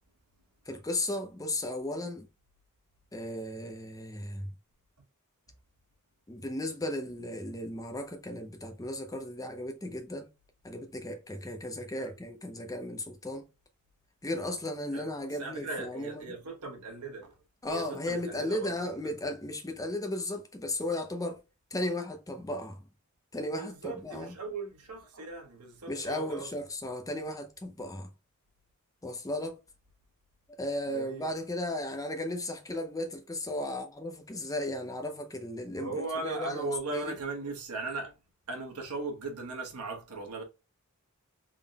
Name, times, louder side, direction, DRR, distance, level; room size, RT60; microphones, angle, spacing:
voice 1, 0.7-2.3 3.1-4.5 6.3-10.3 10.6-13.5 14.2-16.4 17.6-21.4 21.7-22.8 23.3-24.4 25.9-28.1 29.0-29.6 30.6-37.1, left 1 dB, 15° left, 0.7 m, -35 dB
voice 2, 15.4-17.3 17.7-18.7 19.0-19.1 23.6-26.5 30.9-31.3 35.7-38.2 38.5-40.4, right 3 dB, 85° right, 1.3 m, -38 dB
3.7 x 3.6 x 2.3 m
head